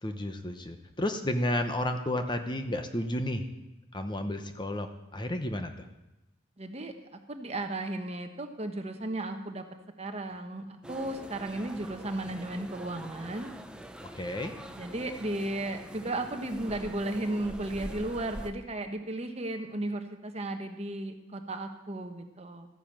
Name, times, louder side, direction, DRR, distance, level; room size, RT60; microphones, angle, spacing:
voice 1, 0.0-3.4 3.9-4.9 5.1-5.9 14.1-14.5, left 1 dB, 25° left, 7 dB, 0.9 m, -32 dB
voice 2, 6.6-6.9 7.3-9.6 10.0-13.5 14.8-22.7, right 1 dB, 30° right, 6 dB, 1.2 m, -35 dB
sound 1, 10.8-18.5, right 1 dB, 5° right, 0.7 m, -44 dB
13.5 x 10.0 x 7.4 m, 0.97 s
head